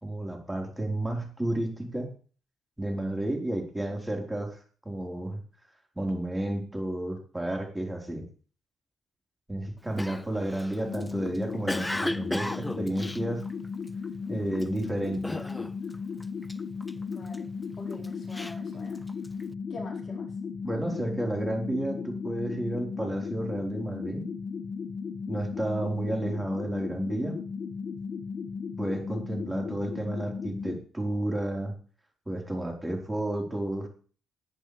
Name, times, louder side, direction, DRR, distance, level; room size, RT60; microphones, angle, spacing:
voice 1, 0.0-2.1 2.8-4.6 4.8-5.4 6.0-8.2 9.5-13.4 14.3-15.5 20.6-24.3 25.3-27.4 28.8-31.8 32.3-33.9, right 1 dB, 10° right, 1 dB, 4.4 m, -31 dB
Cough, 10.0-14.1 14.5-14.8 15.2-17.4 17.9-19.4, left 1 dB, 10° left, 0.5 m, -35 dB
sound 1, 10.8-30.8, left 5 dB, 55° left, 1.5 m, -36 dB
voice 2, 17.0-19.0 19.7-20.3, left 2 dB, 35° left, -2 dB, 4.9 m, -43 dB
18.5 x 10.5 x 3.4 m, 0.40 s
cardioid pair, 90°, 0 cm